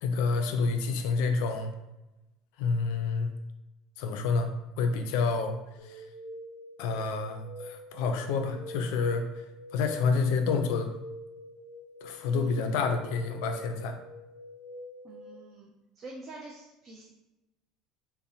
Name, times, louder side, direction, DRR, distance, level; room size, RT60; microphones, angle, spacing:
voice 1, 0.0-1.7 2.6-3.3 4.0-4.5 4.8-5.6 5.8-6.0 6.8-9.4 9.7-10.9 12.0-14.0, left 4 dB, 80° left, 6 dB, 0.3 m, -28 dB
sound 1, 5.8-15.3, equal, 15° left, 0.6 m, -46 dB
voice 2, 12.3-12.8 15.0-15.7 16.0-17.1, equal, 35° right, -1 dB, 0.3 m, -46 dB
2.6 x 2.0 x 2.6 m, 0.98 s
cardioid pair, 140°, 0 cm